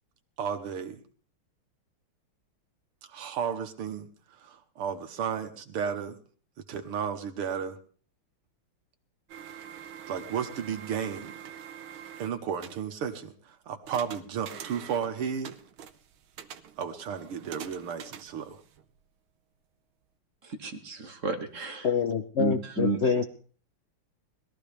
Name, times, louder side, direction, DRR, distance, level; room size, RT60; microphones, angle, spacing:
voice 1, 0.4-1.0 3.1-4.1 4.4-6.2 6.7-7.8 10.1-11.5 12.2-13.3 13.7-15.5 16.8-18.6, right 7 dB, 90° right, 6 dB, 2.2 m, -33 dB
sound 1, 9.3-12.9 13.8-15.2 15.4-19.0, right 9 dB, 70° right, 1.7 m, -45 dB
voice 2, 20.4-21.9 22.4-23.0, right 3 dB, 40° right, 6 dB, 1.6 m, -31 dB
voice 3, 21.8-23.2, left 6 dB, 75° left, 6 dB, 0.6 m, -26 dB
20.5 x 13.5 x 3.4 m, 0.42 s
omnidirectional pair, 2.4 m